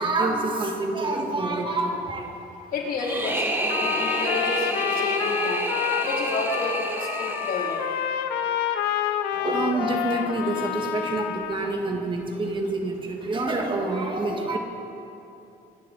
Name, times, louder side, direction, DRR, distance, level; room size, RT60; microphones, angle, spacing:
voice 1, 0.0-2.3 9.3-14.6, right 2 dB, 30° right, 2 dB, 1.9 m, -27 dB
voice 2, 2.7-5.6 6.0-7.8, left 3 dB, 55° left, -2 dB, 3.0 m, -31 dB
sound 1, 3.0-8.1, right 1 dB, 15° right, 1.6 m, -29 dB
Trumpet, 3.7-11.8, left 9 dB, 90° left, 0.9 m, -28 dB
26.5 x 10.0 x 4.2 m, 2.8 s
cardioid pair, 110°, 17 cm